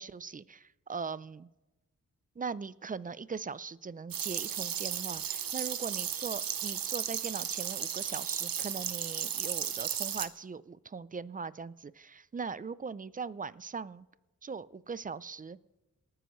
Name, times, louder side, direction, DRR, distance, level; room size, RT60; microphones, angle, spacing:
voice 1, 0.0-1.5 2.4-14.1 14.4-15.6, right 5 dB, 25° right, 18 dB, 0.4 m, -40 dB
sound 1, 4.1-10.3, right 9 dB, 85° right, 0.8 m, -35 dB
27.0 x 9.5 x 3.1 m, 1.1 s
wide cardioid pair, 80°, 34 cm